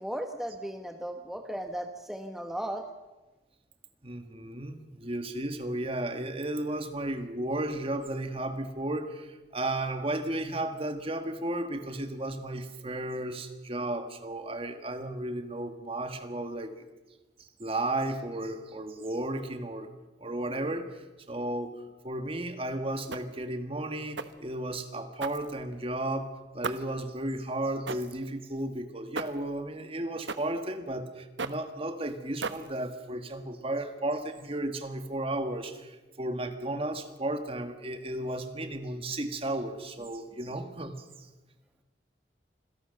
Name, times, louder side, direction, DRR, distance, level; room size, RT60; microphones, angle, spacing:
voice 1, 0.0-2.9, right 1 dB, ahead, 5 dB, 1.0 m, -36 dB
voice 2, 4.0-16.8 17.6-19.9 20.2-21.7 22.0-40.9, right 1 dB, 30° right, 8 dB, 1.7 m, -34 dB
sound 1, 23.1-23.5 24.2-24.5 25.2-25.9 26.6-27.0 27.9-28.2 29.1-29.5 30.3-30.6 31.4-31.7 32.4-32.9, right 4 dB, 90° right, 1.1 m, -37 dB
26.0 x 17.0 x 6.7 m, 1.2 s
head